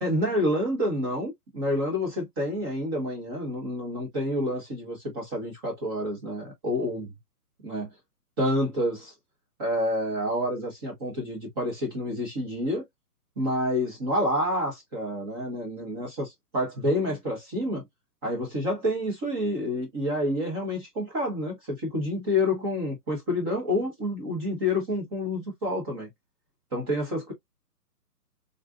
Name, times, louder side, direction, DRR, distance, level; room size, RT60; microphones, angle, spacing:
voice 1, 0.0-7.1 7.6-7.9 8.4-9.1 9.6-12.8 13.4-17.8 18.2-26.1 26.7-27.3, left 1 dB, 15° right, 0.7 m, -28 dB
3.6 x 2.3 x 2.3 m
hypercardioid pair, 145°, 47 cm